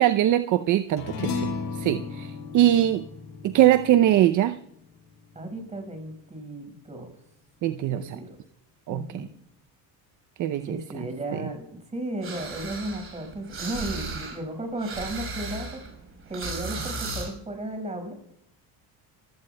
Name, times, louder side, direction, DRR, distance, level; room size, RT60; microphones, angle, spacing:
voice 1, 0.0-1.5 1.8-3.0 3.4-4.6 7.6-8.2 8.9-9.0 10.4-10.8, right 12 dB, 50° right, 11 dB, 0.6 m, -21 dB
sound 1, 1.0-5.7, left 4 dB, 75° left, 5.6 m, -35 dB
voice 2, 5.3-7.1 7.9-8.4 8.9-9.3 10.6-15.8 16.3-18.1, right 1 dB, 15° right, 4 dB, 5.2 m, -35 dB
sound 2, 12.2-14.4 14.6-17.3, right 3 dB, 35° right, 5.4 m, -35 dB
26.5 x 16.0 x 2.2 m, 0.74 s
cardioid pair, 130°, 38 cm